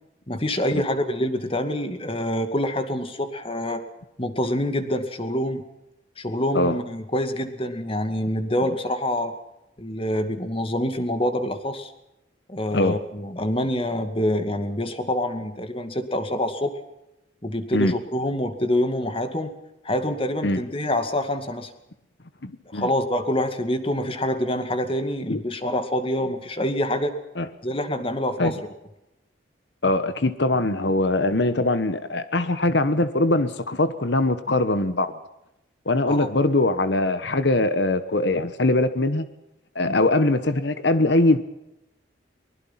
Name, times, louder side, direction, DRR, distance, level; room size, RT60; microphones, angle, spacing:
voice 1, 0.3-3.8 4.2-5.6 6.2-9.3 9.8-11.9 12.5-16.8 17.4-19.6 19.8-21.7 22.7-27.1 27.6-28.6 36.1-36.3, left 1 dB, 30° left, 8 dB, 2.2 m, -26 dB
voice 2, 22.4-22.9 25.3-25.4 27.4-27.5 28.4-28.5 29.8-35.1 35.9-39.2 39.7-41.4, left 2 dB, 60° left, 11 dB, 1.2 m, -22 dB
23.5 x 21.0 x 5.8 m, 0.89 s
head